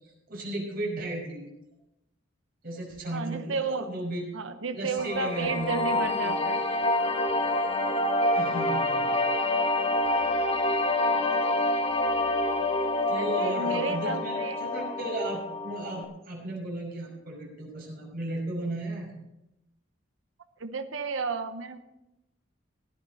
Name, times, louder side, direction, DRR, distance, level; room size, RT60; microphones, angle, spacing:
voice 1, 0.3-1.5 2.6-4.3 4.7-6.3 8.3-9.1 13.1-19.1, right 1 dB, 50° right, -2 dB, 5.6 m, -35 dB
voice 2, 3.1-3.9 4.3-6.6 13.1-14.6 20.6-21.8, right 4 dB, 85° right, 9 dB, 0.9 m, -32 dB
sound 1, 5.0-16.0, left 1 dB, 30° left, 1.3 m, -27 dB
16.5 x 10.5 x 4.1 m, 0.91 s
head